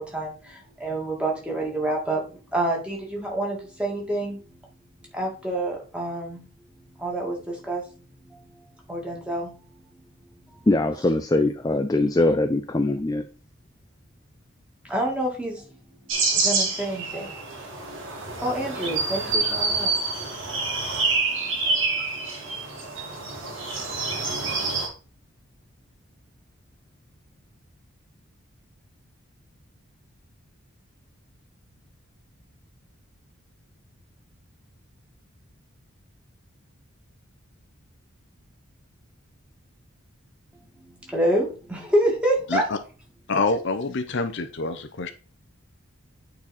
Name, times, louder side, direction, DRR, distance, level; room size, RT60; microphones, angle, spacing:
voice 1, 0.0-4.4 5.1-6.4 7.0-7.8 8.3-8.4 8.9-9.5 14.8-15.7 16.3-17.6 18.4-20.0 20.6-20.7 21.6-22.5 23.1-23.2 40.9-42.6, right 1 dB, 5° right, 2.0 m, -28 dB
voice 2, 10.7-13.3, left 2 dB, 15° left, 0.4 m, -22 dB
sound 1, 16.1-24.9, right 3 dB, 60° right, 2.1 m, -27 dB
voice 3, 43.3-45.1, left 3 dB, 55° left, 0.7 m, -26 dB
8.8 x 4.2 x 4.1 m
head